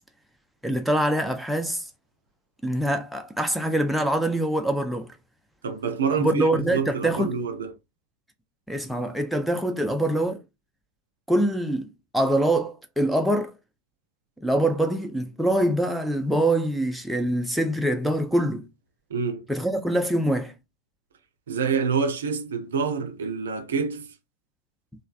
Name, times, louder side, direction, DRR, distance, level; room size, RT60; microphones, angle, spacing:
voice 1, 0.6-1.8 2.6-5.1 6.2-7.4 8.7-10.4 11.3-13.5 14.4-18.7 19.5-20.5, right 1 dB, ahead, 0.4 m, -24 dB
voice 2, 5.6-7.7 19.1-19.4 21.5-24.1, right 5 dB, 65° right, 0.5 m, -27 dB
3.1 x 2.2 x 2.4 m
figure-of-eight pair, 90°, 0 cm